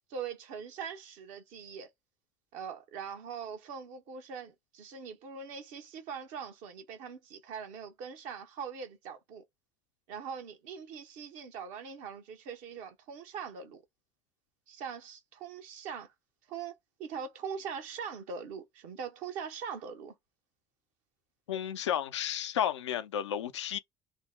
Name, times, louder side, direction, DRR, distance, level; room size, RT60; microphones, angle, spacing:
voice 1, 0.1-1.9 2.5-9.4 10.1-13.8 14.7-16.1 16.5-16.7 17.0-20.2, right 6 dB, 60° right, 0.9 m, -42 dB
voice 2, 21.5-23.8, left 10 dB, 80° left, 0.4 m, -32 dB
3.7 x 2.0 x 3.8 m
figure-of-eight pair, 55°, 15 cm